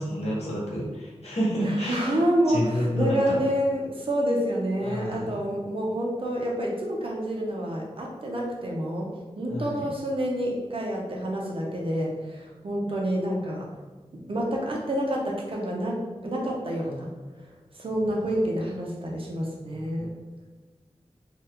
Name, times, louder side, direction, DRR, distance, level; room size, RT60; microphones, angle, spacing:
voice 1, 0.0-2.0 2.5-3.3 4.8-5.2 9.5-9.8, equal, 80° left, -6 dB, 1.0 m, -29 dB
voice 2, 1.6-9.1 9.4-13.7 14.3-17.1 17.7-20.1, equal, 55° right, -2 dB, 0.7 m, -28 dB
2.8 x 2.3 x 3.5 m, 1.3 s
wide cardioid pair, 95°, 11 cm